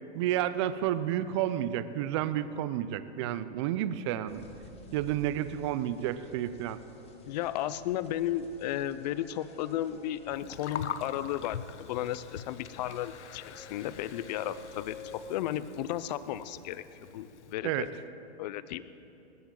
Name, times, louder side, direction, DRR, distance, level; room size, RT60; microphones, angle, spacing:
voice 1, 0.1-4.4 4.9-6.8 17.6-17.9, right 11 dB, 25° right, 14 dB, 0.4 m, -31 dB
sound 1, 4.3-15.3, left 4 dB, 20° left, 1.3 m, -53 dB
voice 2, 7.3-17.9 18.4-18.8, left 12 dB, 40° left, 15 dB, 0.5 m, -34 dB
Gurgling, 10.3-17.5, left 8 dB, 90° left, 0.8 m, -44 dB
20.0 x 15.0 x 3.8 m, 2.8 s
hypercardioid pair, 140°, 34 cm